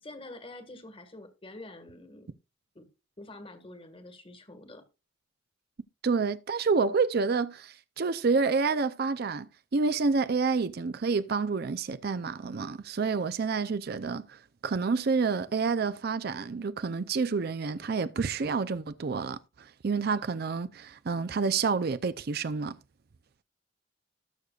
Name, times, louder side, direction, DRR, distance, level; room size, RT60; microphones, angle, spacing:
voice 1, 0.0-2.3 2.7-2.8 3.2-4.8, left 2 dB, 30° left, 1.6 m, -46 dB
voice 2, 6.0-9.5 9.7-22.8, right 4 dB, 55° right, 0.5 m, -28 dB
19.5 x 6.5 x 2.4 m
head